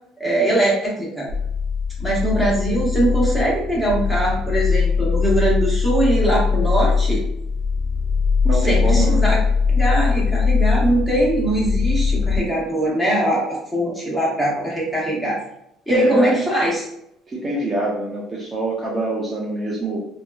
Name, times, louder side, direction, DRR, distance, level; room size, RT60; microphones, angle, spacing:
voice 1, 0.2-1.3 2.0-7.2 8.6-9.3 9.7-15.4 15.9-16.9, right 1 dB, 5° left, -5 dB, 0.9 m, -21 dB
sound 1, 1.3-12.4, left 5 dB, 75° left, 0.5 m, -20 dB
voice 2, 8.4-9.2 15.9-16.4 17.3-20.0, right 2 dB, 20° right, -5 dB, 0.5 m, -25 dB
2.7 x 2.3 x 2.3 m, 0.76 s
cardioid pair, 130°, 0 cm